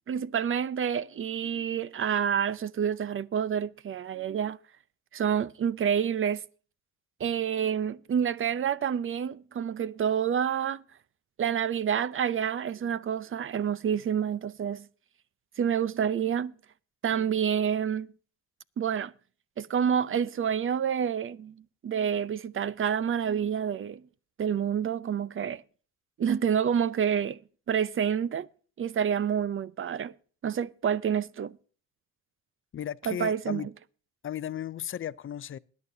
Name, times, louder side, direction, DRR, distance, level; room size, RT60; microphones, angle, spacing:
voice 1, 0.1-4.6 5.1-6.4 7.2-10.8 11.4-14.9 15.6-16.5 17.0-18.1 18.8-19.1 19.6-24.0 24.4-25.6 26.2-27.4 27.7-28.5 28.8-30.1 30.4-31.6 33.1-33.6, right 8 dB, 45° right, 0.6 m, -28 dB
voice 2, 32.7-33.7 34.2-35.6, left 10 dB, 45° left, 0.5 m, -35 dB
20.5 x 10.5 x 2.8 m
cardioid pair, 90°, 30 cm